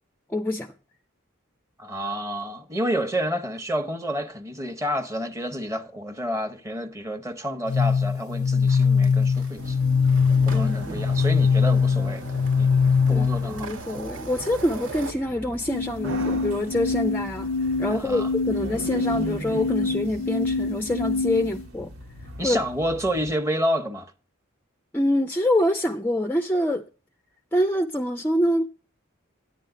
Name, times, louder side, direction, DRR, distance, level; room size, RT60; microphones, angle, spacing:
voice 1, 0.3-0.7 10.5-11.0 13.1-17.5 17.8-21.9 22.4-22.6 24.9-26.8 27.5-28.7, left 1 dB, 10° left, 0.3 m, -25 dB
voice 2, 1.8-9.8 10.3-12.7 13.1-13.7 17.9-18.3 22.4-24.1, equal, 15° right, 0.8 m, -29 dB
sound 1, 7.7-13.6 15.7-21.7, left 5 dB, 80° left, 0.4 m, -23 dB
sound 2, 8.4-15.1, right 4 dB, 65° right, 1.1 m, -42 dB
sound 3, 9.6-23.3, right 1 dB, 85° right, 1.2 m, -39 dB
10.0 x 9.1 x 3.7 m
head